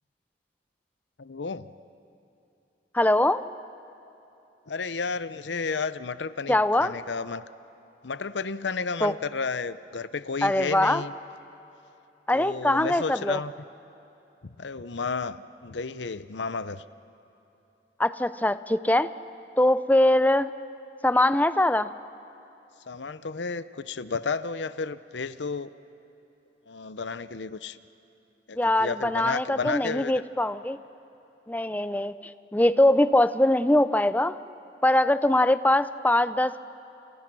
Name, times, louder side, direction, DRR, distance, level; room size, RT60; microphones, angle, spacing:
voice 1, 1.2-1.7 4.7-7.4 8.0-11.1 12.3-13.5 14.4-16.8 22.9-25.7 26.7-27.8 28.5-30.1, left 4 dB, 85° left, 14 dB, 0.8 m, -32 dB
voice 2, 2.9-3.4 6.5-7.0 9.0-9.1 10.4-11.0 12.3-13.4 18.0-19.1 19.6-20.5 21.0-21.9 28.6-30.8 31.5-32.1 32.5-34.4 34.8-36.6, left 1 dB, 10° left, 13 dB, 0.6 m, -22 dB
29.5 x 29.0 x 6.2 m, 3.0 s
head